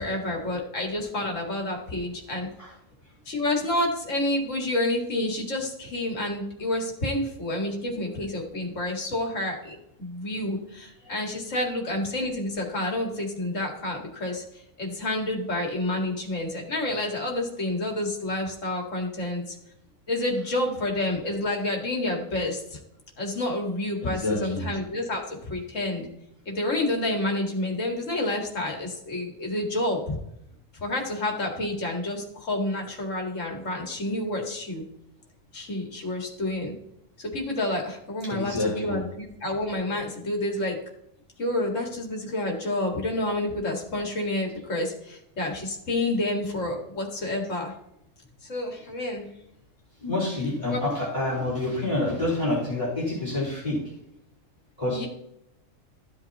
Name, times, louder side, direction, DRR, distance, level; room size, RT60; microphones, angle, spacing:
voice 1, 0.0-2.5 3.3-14.4 14.8-19.6 20.1-22.8 23.2-26.1 26.5-30.2 30.8-34.8 35.5-36.7 37.2-40.8 41.4-47.7 48.5-49.3 50.7-50.8 54.9-55.1, left 1 dB, 70° left, 1 dB, 2.3 m, -29 dB
voice 2, 24.0-24.7 38.3-39.0 50.0-53.8 54.8-55.1, left 2 dB, 25° left, -7 dB, 4.3 m, -28 dB
14.5 x 8.1 x 2.9 m, 0.79 s
omnidirectional pair, 1.4 m